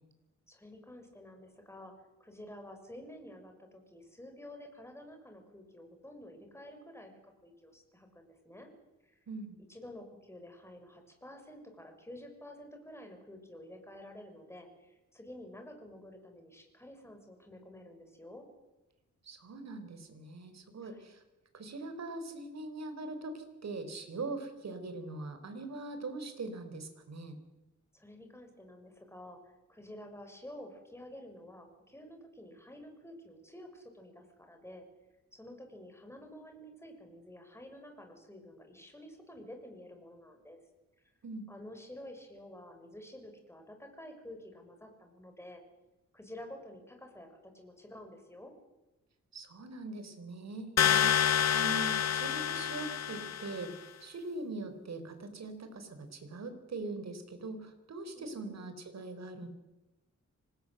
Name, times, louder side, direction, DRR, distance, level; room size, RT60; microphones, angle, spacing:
voice 1, 0.5-1.9 2.2-8.7 9.0-9.2 9.7-18.5 20.8-21.1 27.9-34.8 35.3-40.6 41.5-45.6 46.1-48.5 58.2-58.7, left 1 dB, 10° left, 4 dB, 6.5 m, -50 dB
voice 2, 9.3-9.6 19.2-21.2 21.5-27.4 41.2-41.5 49.3-59.5, right 2 dB, 60° right, 8 dB, 4.4 m, -42 dB
sound 1, 50.8-53.7, left 9 dB, 60° left, 0.7 m, -28 dB
26.0 x 19.5 x 8.0 m, 1.1 s
cardioid pair, 90°, 30 cm